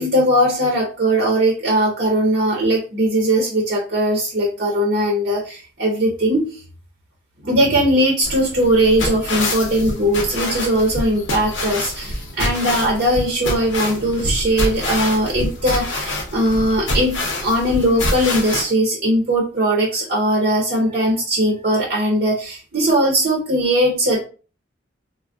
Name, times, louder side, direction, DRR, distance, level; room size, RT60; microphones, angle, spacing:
voice 1, 0.0-6.6 7.4-24.2, right 1 dB, 50° right, -1 dB, 0.6 m, -19 dB
sound 1, 8.2-18.6, left 1 dB, 80° left, 0.8 m, -26 dB
3.4 x 2.0 x 2.4 m, 0.36 s
head